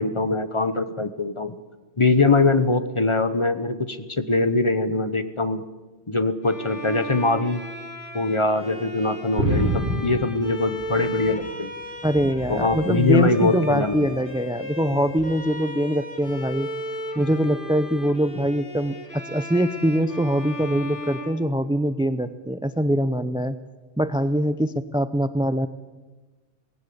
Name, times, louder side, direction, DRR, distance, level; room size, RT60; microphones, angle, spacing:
voice 1, 0.0-1.6 2.0-5.6 6.1-7.6 8.1-11.7 12.5-14.1, left 3 dB, 30° left, 11 dB, 0.9 m, -22 dB
Bowed string instrument, 6.4-22.2, left 1 dB, 50° left, 2.7 m, -36 dB
sound 1, 9.4-11.6 12.0-12.9 13.8-14.2 15.2-15.3, right 1 dB, 65° right, 3.4 m, -28 dB
voice 2, 12.0-16.7 17.2-23.6 24.0-25.7, equal, 5° right, 13 dB, 0.4 m, -23 dB
19.0 x 16.5 x 8.6 m, 1.2 s
omnidirectional pair, 1.2 m